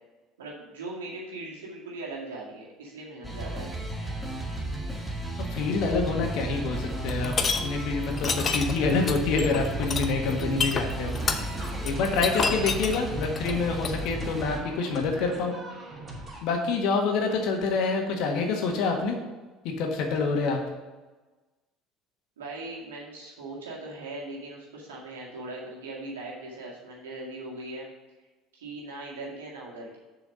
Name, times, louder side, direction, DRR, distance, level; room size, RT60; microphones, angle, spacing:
voice 1, 0.4-3.7 22.4-27.9 28.5-30.0, right 2 dB, 85° right, -3 dB, 2.0 m, -39 dB
sound 1, 3.2-14.6, right 1 dB, ahead, 2.0 m, -33 dB
voice 2, 5.5-7.3 7.6-11.2 11.8-15.5 16.4-19.2 19.6-20.6, left 4 dB, 65° left, 2 dB, 1.6 m, -27 dB
sound 2, 7.1-7.6 8.1-14.0, left 5 dB, 40° left, 0.8 m, -28 dB
sound 3, 11.1-16.4, right 2 dB, 35° right, 2.8 m, -41 dB
6.7 x 4.9 x 6.5 m, 1.2 s
hypercardioid pair, 70°, 0 cm